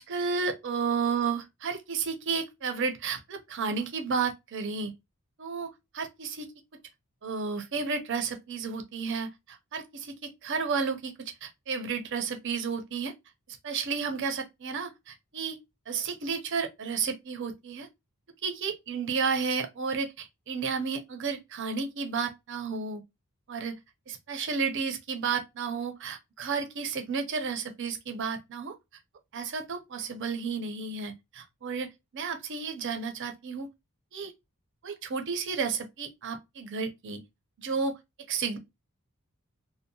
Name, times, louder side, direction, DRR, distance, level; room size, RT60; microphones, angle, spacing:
voice 1, 0.0-4.9 5.4-5.7 5.9-6.5 7.2-13.1 13.5-15.6 15.9-17.9 18.4-23.0 23.5-23.8 24.1-28.7 29.3-33.7 34.1-34.3 34.8-37.2 37.6-37.9 38.3-38.6, right 5 dB, 55° right, 0.5 m, -32 dB
2.6 x 2.0 x 2.6 m
head